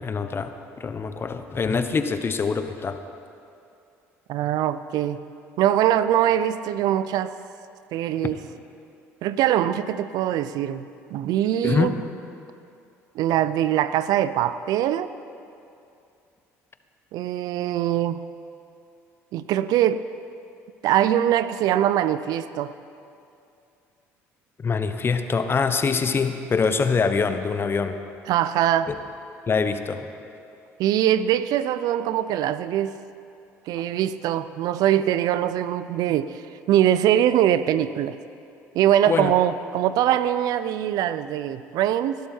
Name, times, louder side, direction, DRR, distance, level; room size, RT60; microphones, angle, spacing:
voice 1, 0.0-3.0 11.6-12.1 24.6-28.0 28.9-29.0 29.5-30.1 39.1-39.3, left 5 dB, 35° left, 8 dB, 1.1 m, -24 dB
voice 2, 4.3-5.2 5.6-7.3 7.9-8.4 9.2-11.9 13.1-15.1 17.1-18.2 19.3-20.0 20.8-22.7 28.3-28.9 30.8-32.9 33.7-36.4 36.7-38.2 38.7-42.2, right 11 dB, 70° right, 14 dB, 0.5 m, -22 dB
19.5 x 12.0 x 4.5 m, 2.6 s
supercardioid pair, 70°, 7 cm